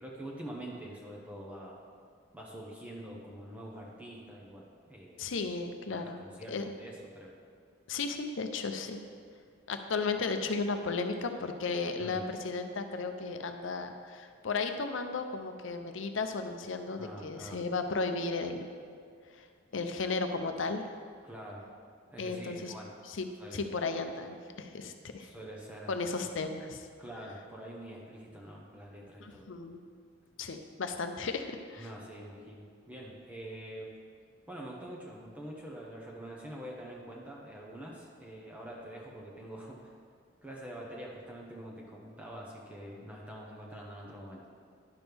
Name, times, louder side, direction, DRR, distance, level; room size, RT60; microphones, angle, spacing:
voice 1, 0.0-1.8 2.3-5.2 5.9-7.3 12.0-12.2 17.0-17.6 21.2-21.7 22.1-22.9 23.4-23.7 25.2-26.0 27.0-29.5 31.8-33.9 34.5-39.9 40.4-44.4, right 1 dB, 5° right, -3 dB, 0.8 m, -45 dB
voice 2, 5.2-6.2 6.5-6.6 7.9-9.0 9.7-18.7 19.4-19.5 19.7-20.8 22.2-22.7 23.1-25.3 25.9-26.9 29.2-29.8 30.4-31.9, left 4 dB, 70° left, 7 dB, 0.6 m, -34 dB
10.5 x 6.1 x 3.5 m, 2.1 s
head